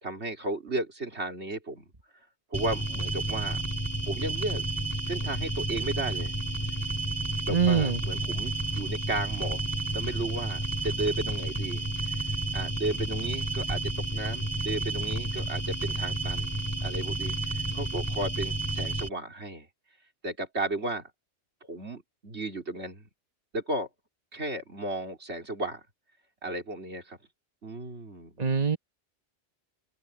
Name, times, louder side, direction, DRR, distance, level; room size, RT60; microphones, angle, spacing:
voice 1, 0.0-1.9 2.5-3.6 4.0-4.6 5.1-6.3 7.4-9.6 9.9-11.9 12.5-16.5 16.8-19.7 20.2-21.1 21.7-23.1 23.5-23.9 24.3-25.8 26.4-27.2 27.6-28.4, right 2 dB, 70° right, 4.1 m, -34 dB
sound 1, 2.5-19.1, right 2 dB, 15° left, 3.2 m, -31 dB
voice 2, 7.5-8.0 28.4-28.8, right 6 dB, 35° right, 1.8 m, -24 dB
open air
omnidirectional pair, 1.2 m